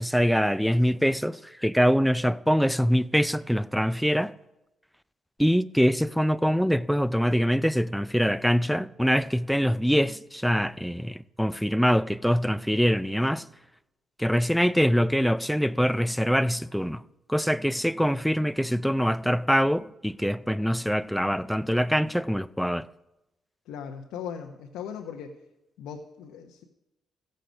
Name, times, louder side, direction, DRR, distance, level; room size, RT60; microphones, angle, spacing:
voice 1, 0.0-4.3 5.4-13.4 14.2-17.0 17.3-22.9, equal, ahead, 0.4 m, -24 dB
voice 2, 23.7-25.5 25.8-26.6, left 7 dB, 90° left, 0.8 m, -38 dB
15.5 x 6.5 x 5.1 m
cardioid pair, 90°, 0 cm